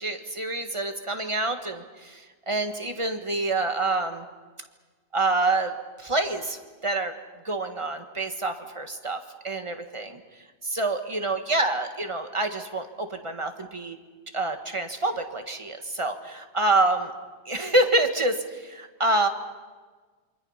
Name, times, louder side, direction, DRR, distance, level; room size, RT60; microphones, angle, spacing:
voice 1, 0.0-4.2 5.1-7.1 7.4-9.2 9.4-10.2 10.6-14.0 14.3-17.1 17.4-19.3, right 2 dB, 30° right, 6 dB, 1.7 m, -27 dB
27.5 x 24.0 x 5.8 m, 1.4 s
omnidirectional pair, 1.1 m